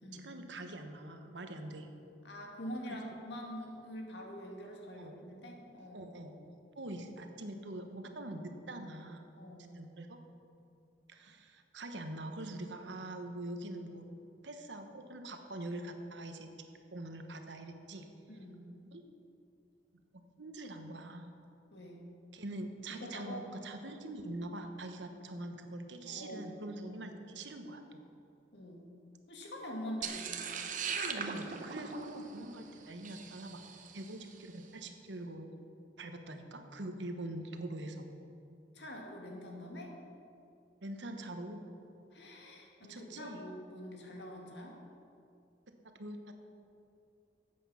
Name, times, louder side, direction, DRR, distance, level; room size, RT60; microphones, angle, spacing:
voice 1, 0.1-1.9 2.9-3.2 4.9-5.2 5.9-6.4 6.8-9.2 9.7-10.2 11.1-14.1 14.4-16.5 16.9-18.1 18.9-19.0 20.4-21.3 22.3-28.0 30.9-33.6 33.9-35.5 36.0-38.0 40.8-41.6 42.9-43.4 45.8-46.3, right 1 dB, 85° right, 6 dB, 1.1 m, -44 dB
voice 2, 2.2-6.1 9.4-9.8 18.3-18.7 21.7-22.0 22.9-23.5 26.0-27.1 28.5-28.9 29.3-30.6 38.7-40.0 42.1-44.8, equal, 70° left, 0 dB, 2.0 m, -45 dB
sound 1, 30.0-34.3, right 6 dB, 45° right, 0.8 m, -40 dB
13.0 x 8.3 x 5.6 m, 2.6 s
head